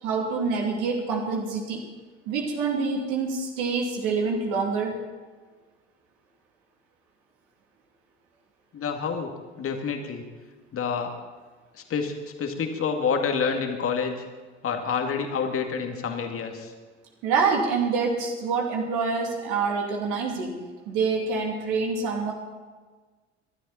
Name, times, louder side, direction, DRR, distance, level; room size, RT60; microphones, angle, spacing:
voice 1, 0.0-1.8 2.3-5.0 17.2-20.6 20.9-22.3, right 4 dB, 60° right, 0 dB, 3.0 m, -26 dB
voice 2, 8.7-9.3 9.6-10.3 10.7-11.1 11.7-12.1 12.4-14.2 14.6-16.7, left 6 dB, 40° left, 4 dB, 2.2 m, -28 dB
21.5 x 12.5 x 4.3 m, 1.4 s
figure-of-eight pair, 65°, 35 cm